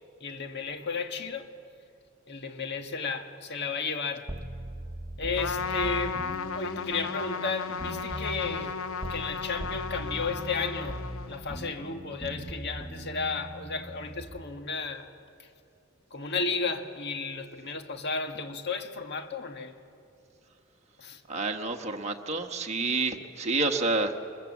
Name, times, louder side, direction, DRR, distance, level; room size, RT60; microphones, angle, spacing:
voice 1, 0.2-1.5 2.3-4.3 5.2-6.2 6.5-8.8 9.1-11.0 11.3-15.1 15.4-15.5 16.1-19.7 21.0-21.2, left 4 dB, 55° left, 1.6 m, -33 dB
sound 1, 4.3-9.3 9.6-14.4, right 1 dB, 10° right, 1.1 m, -40 dB
Trumpet, 5.4-11.5, left 5 dB, 80° left, 0.6 m, -35 dB
voice 2, 21.3-24.2, right 3 dB, 35° right, 1.3 m, -29 dB
24.0 x 22.0 x 7.4 m
head